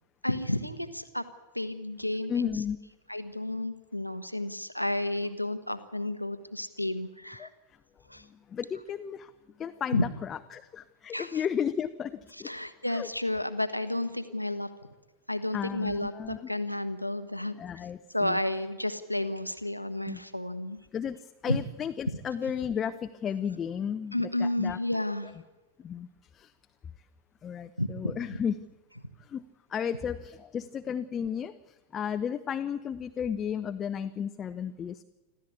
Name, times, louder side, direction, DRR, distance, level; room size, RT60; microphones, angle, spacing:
voice 1, 0.2-1.3 1.5-2.5 3.1-7.5 8.1-8.3 9.9-10.0 11.1-11.4 12.4-14.7 15.3-17.5 18.1-20.8 21.5-21.6 22.1-22.2 24.1-25.3 27.8-28.1, left 1 dB, 90° left, 10 dB, 1.2 m, -31 dB
voice 2, 2.3-2.8 7.4-7.5 8.2-9.3 9.6-12.5 12.9-13.1 15.5-16.5 17.6-18.4 20.1-20.2 20.9-24.8 25.2-25.3 25.8-26.1 26.3-26.5 27.4-28.6 29.2-29.4 29.7-35.0, left 8 dB, 25° left, 9 dB, 0.7 m, -34 dB
26.5 x 14.5 x 8.4 m, 1.2 s
figure-of-eight pair, 90°, 0 cm